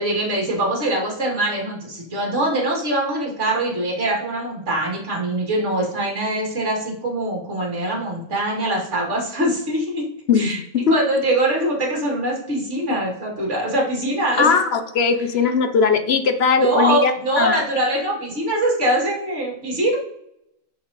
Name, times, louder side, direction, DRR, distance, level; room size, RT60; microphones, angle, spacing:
voice 1, 0.0-10.0 10.4-10.6 10.9-14.6 16.6-20.0, right 1 dB, 55° right, -2 dB, 2.7 m, -23 dB
voice 2, 10.3-11.0 14.4-17.1 17.4-17.6, left 5 dB, 55° left, 8 dB, 0.9 m, -19 dB
6.6 x 6.1 x 4.1 m, 0.77 s
omnidirectional pair, 1.5 m